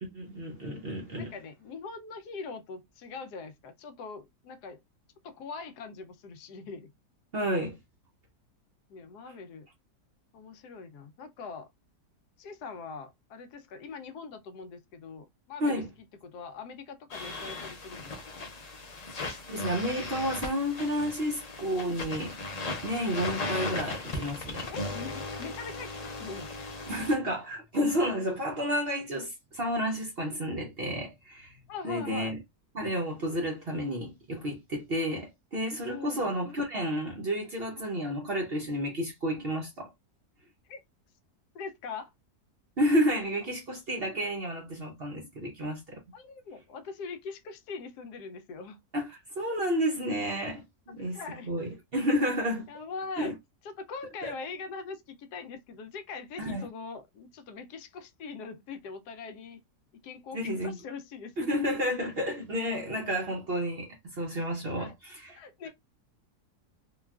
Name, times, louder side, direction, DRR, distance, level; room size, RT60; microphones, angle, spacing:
voice 1, 0.0-1.3 7.3-7.8 15.6-15.9 19.5-22.4 22.8-24.7 26.9-31.6 31.8-32.4 32.7-39.9 42.8-46.0 48.9-51.2 51.5-52.7 53.2-53.3 54.2-54.3 56.4-56.7 60.3-60.8 61.4-65.4, equal, 50° right, 0.7 m, -31 dB
voice 2, 1.1-4.8 5.2-6.9 8.9-9.7 10.3-11.7 12.4-15.8 16.2-18.4 24.7-26.5 31.7-32.3 35.9-36.3 40.7-40.8 41.5-42.1 46.1-48.8 51.0-51.5 52.7-53.3 53.6-59.6 60.0-61.6 62.0-62.1 64.8-64.9 65.3-65.7, left 5 dB, 75° left, 1.1 m, -42 dB
sound 1, 17.1-27.1, left 2 dB, 60° left, 0.4 m, -37 dB
3.7 x 2.3 x 2.3 m
omnidirectional pair, 1.8 m